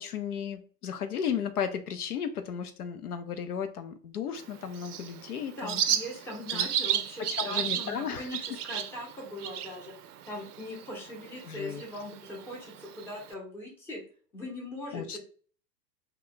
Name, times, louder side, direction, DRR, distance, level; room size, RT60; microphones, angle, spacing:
voice 1, 0.0-5.8 6.5-6.7 7.3-8.3 11.5-11.8 14.9-15.2, left 7 dB, 65° left, 9 dB, 0.5 m, -34 dB
Bird, 4.4-13.3, right 9 dB, 65° right, 0.5 m, -34 dB
voice 2, 5.6-9.9 10.2-14.0 14.3-15.2, left 1 dB, 5° left, -3 dB, 0.7 m, -40 dB
2.9 x 2.2 x 3.8 m, 0.43 s
figure-of-eight pair, 105°, 50 cm